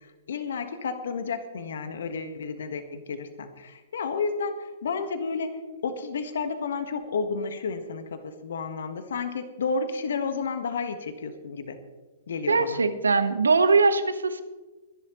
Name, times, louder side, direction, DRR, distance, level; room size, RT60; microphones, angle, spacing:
voice 1, 0.3-11.8 12.3-12.8, left 4 dB, 70° left, 9 dB, 1.4 m, -31 dB
voice 2, 12.5-14.4, right 4 dB, 80° right, 11 dB, 1.2 m, -21 dB
23.5 x 11.0 x 3.1 m, 1.2 s
figure-of-eight pair, 115°, 0 cm